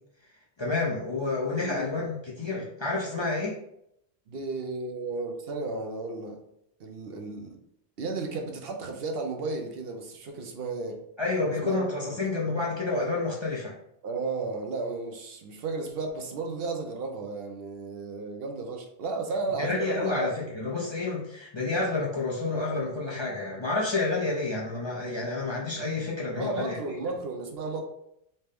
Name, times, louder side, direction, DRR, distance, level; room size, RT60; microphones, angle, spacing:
voice 1, 0.6-3.6 11.2-13.7 19.6-26.8, left 3 dB, 35° left, -4 dB, 0.5 m, -29 dB
voice 2, 1.6-2.0 4.3-6.4 6.8-7.6 8.0-11.0 11.6-11.8 12.1-12.2 14.0-20.4 26.4-27.8, right 3 dB, 70° right, 3 dB, 0.8 m, -33 dB
4.2 x 2.1 x 3.4 m, 0.77 s
omnidirectional pair, 1.0 m